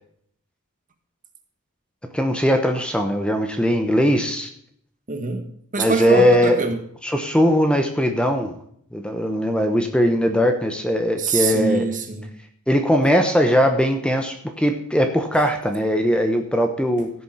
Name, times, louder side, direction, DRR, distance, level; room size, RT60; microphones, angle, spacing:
voice 1, 2.1-4.5 5.8-6.6 7.0-8.6 8.9-11.8 12.7-17.1, equal, 5° left, 1.0 m, -20 dB
voice 2, 5.1-6.8 11.2-12.4 15.3-15.5, right 4 dB, 35° right, 1.5 m, -25 dB
15.5 x 7.0 x 4.2 m
head